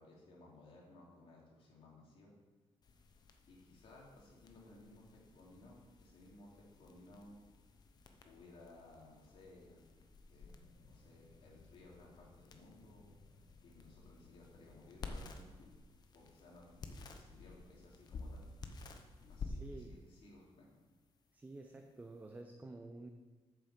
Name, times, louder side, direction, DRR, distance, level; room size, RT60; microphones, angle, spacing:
voice 1, 0.0-2.3 3.5-7.4 8.2-9.8 10.3-10.5 10.8-13.1 13.6-15.7 16.1-18.4 19.3-20.7, left 2 dB, 60° left, -3 dB, 2.9 m, -59 dB
sound 1, 2.8-22.4, left 3 dB, 40° left, 0.9 m, -53 dB
voice 2, 19.5-19.9 21.3-23.1, right 2 dB, 15° right, 5 dB, 0.5 m, -50 dB
8.6 x 6.8 x 6.6 m, 1.3 s
cardioid pair, 170°, 11 cm